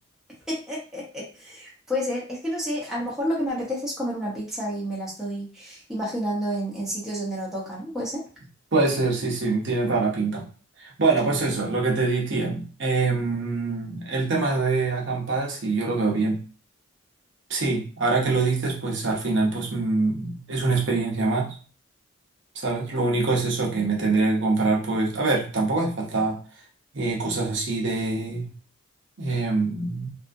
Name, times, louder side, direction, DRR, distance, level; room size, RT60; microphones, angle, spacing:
voice 1, 0.5-8.2 23.0-23.1, equal, ahead, -6 dB, 0.8 m, -30 dB
voice 2, 8.7-10.4 10.8-16.4 17.5-21.6 22.6-26.4 26.9-28.5 29.2-30.1, right 3 dB, 60° right, -2 dB, 0.7 m, -24 dB
2.7 x 2.4 x 2.6 m, 0.39 s
head